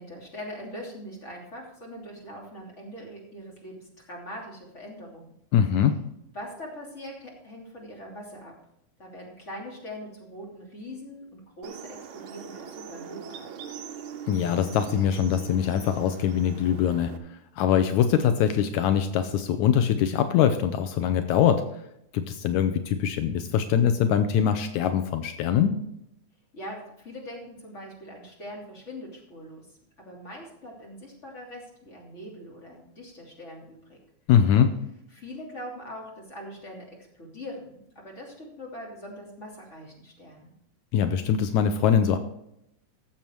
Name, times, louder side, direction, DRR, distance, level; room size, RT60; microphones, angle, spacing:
voice 1, 0.0-5.3 6.3-8.6 9.0-13.5 26.5-29.7 30.0-34.0 35.1-40.5, equal, 25° left, -1 dB, 3.2 m, -42 dB
voice 2, 5.5-5.9 14.3-17.1 17.6-21.6 22.1-25.8 34.3-34.7 40.9-42.2, left 8 dB, 80° left, 9 dB, 2.1 m, -23 dB
sound 1, 11.6-17.2, right 7 dB, 65° right, 1.3 m, -41 dB
14.5 x 7.3 x 4.6 m, 0.80 s
omnidirectional pair, 3.4 m